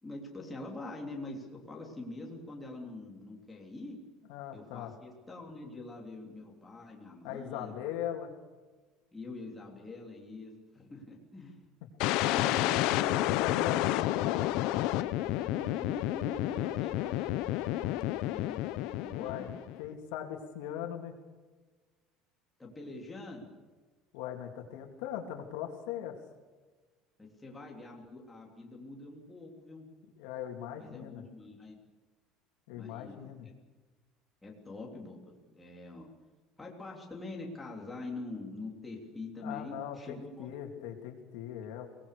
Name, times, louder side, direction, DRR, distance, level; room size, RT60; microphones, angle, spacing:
voice 1, 0.0-4.0 4.5-7.7 9.1-11.6 12.3-13.4 15.0-19.5 22.6-23.5 27.2-29.9 30.8-31.8 32.7-33.2 33.4-33.5 34.4-36.1 36.6-40.5, left 2 dB, 10° left, -1 dB, 3.3 m, -45 dB
voice 2, 4.3-4.9 7.2-8.3 12.7-12.8 13.3-14.5 19.1-19.5 19.8-21.1 24.1-26.2 30.2-31.2 32.7-33.5 39.4-41.9, left 10 dB, 80° left, 3 dB, 3.3 m, -39 dB
sound 1, 12.0-19.9, left 16 dB, 60° left, 0.8 m, -30 dB
23.5 x 19.5 x 6.8 m, 1.3 s
cardioid pair, 175°, 0 cm